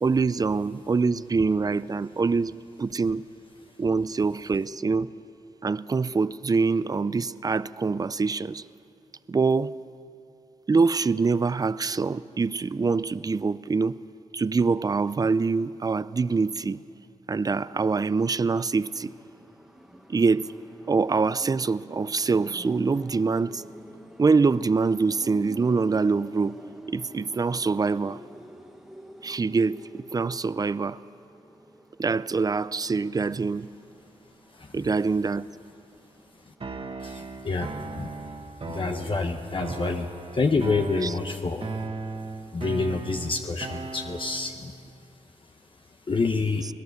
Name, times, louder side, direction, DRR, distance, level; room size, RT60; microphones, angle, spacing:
voice 1, 0.0-3.2 3.8-5.1 5.6-8.6 9.3-9.8 10.7-13.9 14.3-16.8 17.3-19.1 20.1-20.5 20.9-23.6 24.2-26.6 26.9-28.2 29.2-31.0 32.0-33.7 34.7-35.5 41.0-41.1, right 4 dB, 30° right, 17 dB, 0.5 m, -24 dB
sound 1, 18.7-36.8, equal, 5° right, 1.5 m, -48 dB
sound 2, 36.6-44.6, right 3 dB, 45° right, 1.7 m, -37 dB
voice 2, 37.0-38.1 38.6-41.7 42.5-44.7 46.1-46.7, left 4 dB, 40° left, 4 dB, 1.1 m, -28 dB
26.0 x 18.0 x 6.6 m, 2.5 s
cardioid pair, 80°, 13 cm